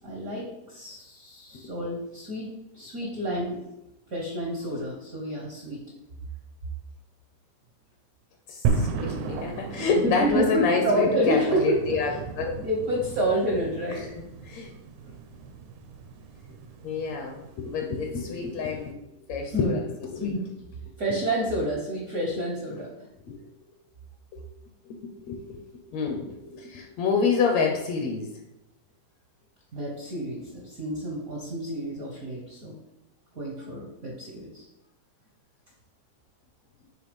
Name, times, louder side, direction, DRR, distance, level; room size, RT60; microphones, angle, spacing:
voice 1, 0.0-3.6 4.1-5.8 10.0-11.8 12.1-12.2 12.5-14.0 15.1-15.2 19.5-19.8 20.2-20.4 21.0-22.9 29.7-32.8 33.3-34.6, right 1 dB, 60° right, -1 dB, 0.9 m, -29 dB
voice 2, 8.5-12.1 12.4-12.6 14.4-14.7 16.8-19.0 19.3-20.4 23.3-23.4 24.9-25.6 25.9-28.3, left 5 dB, 70° left, 3 dB, 1.8 m, -28 dB
sound 1, 8.7-18.9, right 5 dB, 75° right, 2.1 m, -35 dB
8.8 x 3.3 x 5.3 m, 0.90 s
omnidirectional pair, 3.6 m